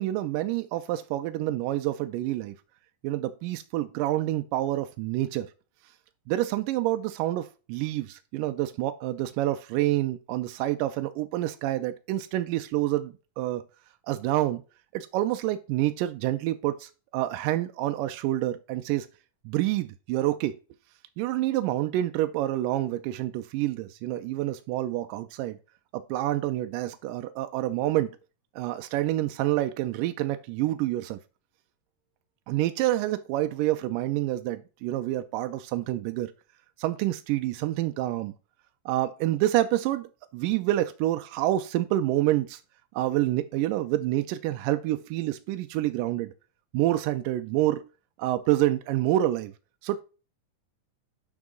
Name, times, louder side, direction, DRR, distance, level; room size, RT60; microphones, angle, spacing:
voice 1, 0.0-2.5 3.0-5.5 6.3-13.6 14.1-14.6 14.9-19.1 19.5-20.5 21.2-25.6 25.9-28.1 28.6-31.2 32.5-36.3 36.8-38.3 38.9-40.1 40.3-42.6 43.0-46.3 46.7-47.9 48.2-49.5 49.8-50.0, right 14 dB, 85° right, 2.2 m, -27 dB
11.0 x 4.8 x 3.7 m
omnidirectional pair, 3.8 m